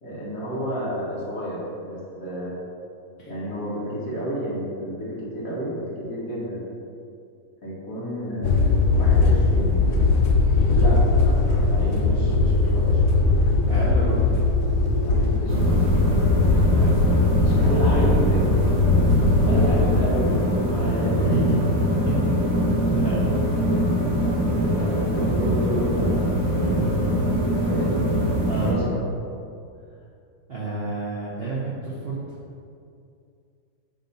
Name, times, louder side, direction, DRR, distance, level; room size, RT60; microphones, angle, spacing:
voice 1, 0.0-2.5 3.3-6.6 7.6-9.9 10.8-13.0 15.0-15.7 17.4-18.5 19.4-21.4 24.5-28.1 28.6-28.8, equal, 50° left, -7 dB, 1.8 m, -31 dB
sound 1, 8.4-20.0, left 3 dB, 85° left, 0.6 m, -20 dB
voice 2, 13.7-14.4 16.7-17.0 17.5-17.7 21.2-21.6 22.1-22.2 22.9-23.2 24.7-25.0 28.5-28.9 30.5-32.4, right 3 dB, 50° right, -7 dB, 0.8 m, -30 dB
sound 2, 15.5-28.7, equal, 80° right, 1.9 m, -23 dB
7.2 x 2.8 x 5.3 m, 2.4 s
omnidirectional pair, 2.0 m